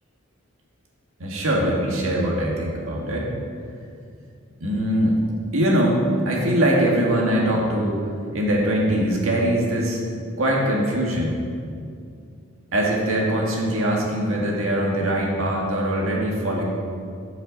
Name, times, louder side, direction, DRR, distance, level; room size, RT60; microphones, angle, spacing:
voice 1, 1.2-3.3 4.6-5.2 5.5-8.0 8.3-10.0 10.4-11.4 12.7-16.6, right 1 dB, 85° right, -2 dB, 1.8 m, -22 dB
12.5 x 6.2 x 4.0 m, 2.3 s
head